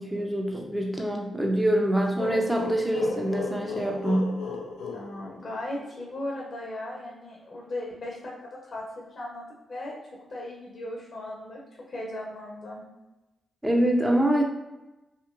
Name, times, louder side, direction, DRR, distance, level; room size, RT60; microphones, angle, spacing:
voice 1, 0.0-4.3 13.6-14.4, right 1 dB, 10° right, 1 dB, 0.7 m, -25 dB
sound 1, 2.2-5.9, left 5 dB, 80° left, 0.4 m, -35 dB
voice 2, 4.9-8.8 9.1-9.9 10.3-11.6 11.9-12.8, left 1 dB, 55° left, -3 dB, 0.7 m, -37 dB
2.9 x 2.5 x 2.5 m, 1.0 s
hypercardioid pair, 40°, 0 cm